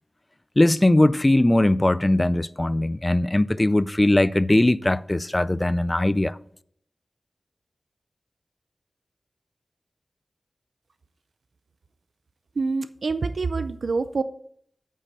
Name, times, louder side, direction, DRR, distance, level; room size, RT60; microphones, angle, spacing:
voice 1, 0.6-6.4, left 1 dB, 20° left, 0.3 m, -20 dB
voice 2, 12.6-14.2, right 4 dB, 75° right, 0.4 m, -26 dB
8.5 x 5.4 x 5.2 m
wide cardioid pair, 80°, 0 cm